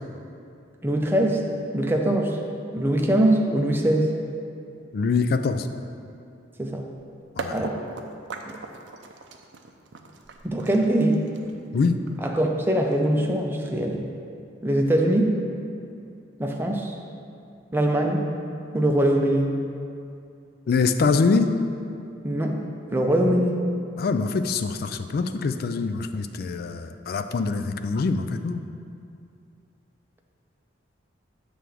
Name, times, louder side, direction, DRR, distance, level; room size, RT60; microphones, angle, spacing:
voice 1, 0.8-1.4 1.7-2.4 2.7-4.2 6.6-6.8 7.5-7.8 8.5-8.6 10.4-11.3 12.2-14.0 14.6-15.3 16.4-17.0 17.7-18.3 18.7-19.6 22.2-22.6 22.9-23.6, right 1 dB, 10° right, 1 dB, 0.5 m, -22 dB
voice 2, 4.9-5.7 7.4-7.6 11.7-12.0 20.7-21.6 24.0-28.6, left 4 dB, 50° left, 9 dB, 0.3 m, -24 dB
sound 1, 7.4-13.2, right 3 dB, 60° right, 0.5 m, -39 dB
7.5 x 3.4 x 6.3 m, 2.5 s
head